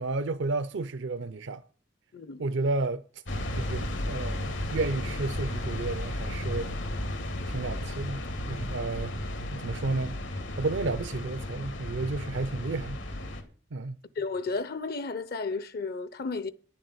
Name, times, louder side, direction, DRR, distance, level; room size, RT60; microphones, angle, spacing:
voice 1, 0.0-1.6 2.4-3.0 3.5-6.8 7.5-9.1 9.5-10.2 10.6-13.0 13.7-14.0, right 3 dB, 70° right, 0.6 m, -32 dB
voice 2, 2.1-2.4 14.2-16.5, left 4 dB, 55° left, 0.7 m, -33 dB
sound 1, 3.3-13.4, left 1 dB, 85° left, 2.4 m, -34 dB
10.0 x 7.2 x 8.0 m
head